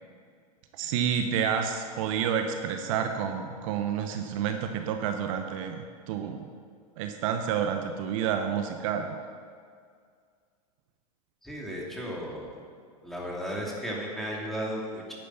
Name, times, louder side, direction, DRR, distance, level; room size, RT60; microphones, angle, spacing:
voice 1, 0.7-5.8 6.1-6.5 7.0-9.2, right 8 dB, 60° right, 6 dB, 0.9 m, -29 dB
voice 2, 11.4-12.5 13.0-15.1, equal, ahead, -4 dB, 2.7 m, -34 dB
10.5 x 8.5 x 5.7 m, 2.1 s
hypercardioid pair, 105°, 19 cm